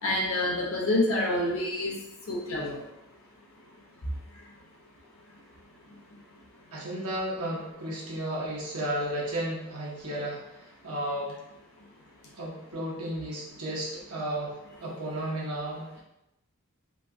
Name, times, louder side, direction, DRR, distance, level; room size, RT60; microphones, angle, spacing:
voice 1, 0.0-1.9 2.3-2.8, left 1 dB, 65° left, -3 dB, 0.8 m, -27 dB
voice 2, 6.7-11.4 12.4-16.0, right 1 dB, 85° right, -4 dB, 1.0 m, -33 dB
3.1 x 2.8 x 2.5 m, 0.89 s
head